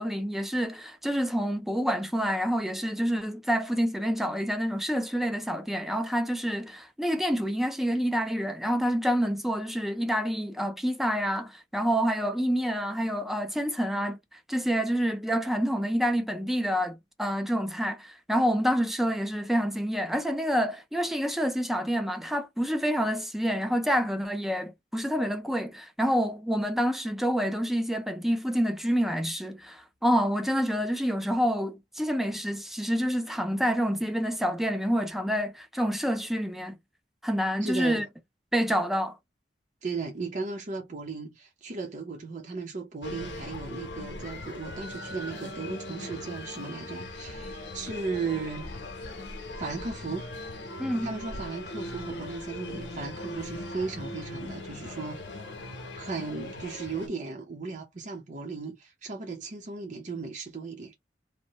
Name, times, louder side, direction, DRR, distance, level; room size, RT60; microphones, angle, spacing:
voice 1, 0.0-36.8 37.2-38.0 38.5-39.2 50.8-51.1, equal, ahead, 0.4 m, -28 dB
voice 2, 37.6-38.1 39.8-48.7 49.6-50.2 51.0-55.4 56.0-60.9, right 4 dB, 45° right, 0.6 m, -36 dB
sound 1, 43.0-57.1, left 1 dB, 90° left, 0.8 m, -39 dB
2.7 x 2.1 x 2.9 m
head